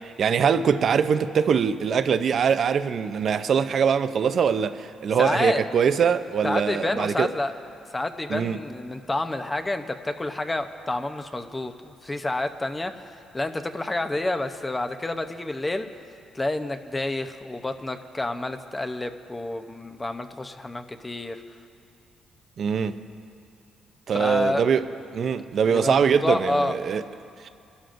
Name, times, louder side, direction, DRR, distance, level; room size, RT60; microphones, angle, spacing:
voice 1, 0.2-7.3 8.3-8.6 22.6-23.0 24.1-24.9 25.1-27.0 27.4-27.5, right 7 dB, 55° right, 11 dB, 0.6 m, -22 dB
voice 2, 5.2-5.6 6.4-7.5 7.9-12.9 13.3-15.9 16.3-21.4 24.1-24.6 25.7-26.8, left 2 dB, 20° left, 8 dB, 0.7 m, -29 dB
29.5 x 12.5 x 2.6 m, 2.5 s
cardioid pair, 90°, 0 cm